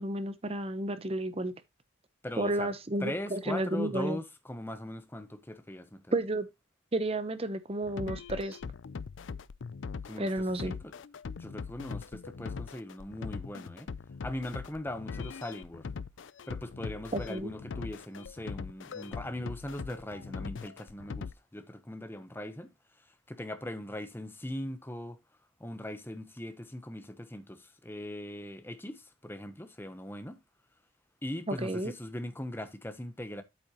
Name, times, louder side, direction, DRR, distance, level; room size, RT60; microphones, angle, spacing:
voice 1, 0.0-1.5 2.4-4.2 6.1-6.5 6.9-8.6 10.2-10.7 17.1-17.5 31.5-31.9, right 1 dB, 30° right, 0.9 m, -32 dB
voice 2, 2.2-2.7 3.0-6.1 10.0-10.9 11.4-13.9 14.2-15.9 16.5-22.7 23.0-25.2 25.6-30.4 31.2-33.4, left 1 dB, 10° left, 1.0 m, -40 dB
sound 1, 7.8-21.3, left 5 dB, 80° left, 0.5 m, -41 dB
8.6 x 7.7 x 3.0 m
head